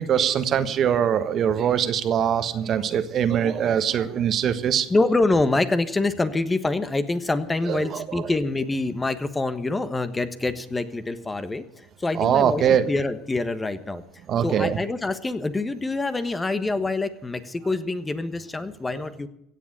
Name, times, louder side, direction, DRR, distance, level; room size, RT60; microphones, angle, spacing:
voice 1, 0.0-4.9 7.7-8.2 12.1-12.9 14.3-14.8, right 9 dB, 50° right, 10 dB, 1.3 m, -22 dB
voice 2, 4.9-14.0 14.4-19.3, left 2 dB, 15° left, 11 dB, 1.3 m, -26 dB
16.5 x 7.4 x 9.1 m, 0.78 s
hypercardioid pair, 75°, 0 cm